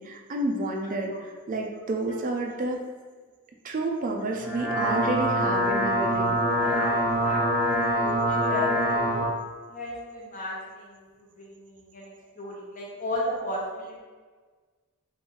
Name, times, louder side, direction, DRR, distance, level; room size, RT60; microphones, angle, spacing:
voice 1, 0.0-2.8 3.6-6.4, right 2 dB, 40° right, 2 dB, 0.4 m, -30 dB
sound 1, 4.3-9.3, equal, 5° right, 0.9 m, -25 dB
voice 2, 6.4-9.1 9.7-11.1 11.4-14.0, left 1 dB, 35° left, -4 dB, 0.8 m, -35 dB
3.0 x 2.5 x 3.6 m, 1.4 s
head